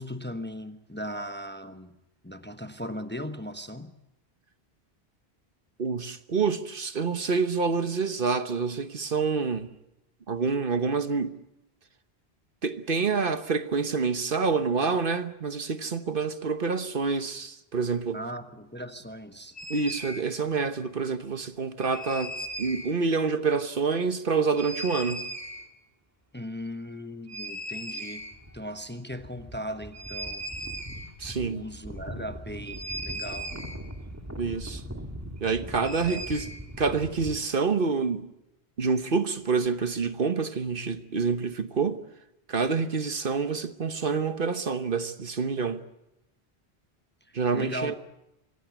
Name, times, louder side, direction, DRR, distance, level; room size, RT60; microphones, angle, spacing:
voice 1, 0.0-1.9 2.2-3.9 18.1-19.6 26.3-28.3 28.5-30.4 31.3-33.5 36.1-36.3 47.3-48.0, equal, 10° left, 1.0 m, -38 dB
voice 2, 5.8-9.7 10.3-11.4 12.6-18.2 19.7-25.2 31.2-31.6 34.4-34.8 35.4-36.5 36.8-38.3 38.8-42.0 42.5-45.8 47.3-48.0, right 5 dB, 55° right, 1.2 m, -27 dB
sound 1, 19.6-20.2 21.8-22.9 24.5-25.7 27.3-28.6 28.9-29.0 29.1-37.4, right 1 dB, 15° right, 2.0 m, -38 dB
25.5 x 16.0 x 9.3 m
omnidirectional pair, 1.1 m